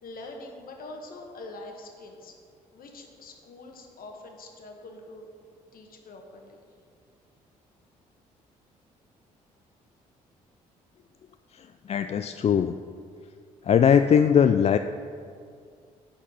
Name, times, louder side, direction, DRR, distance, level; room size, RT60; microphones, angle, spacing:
voice 1, 0.0-2.3 2.7-5.3 5.7-6.6, left 2 dB, 60° left, 2 dB, 1.5 m, -44 dB
voice 2, 11.5-12.8 13.6-14.8, left 8 dB, 40° left, 9 dB, 0.3 m, -20 dB
10.0 x 4.5 x 5.6 m, 2.3 s
hypercardioid pair, 55°, 17 cm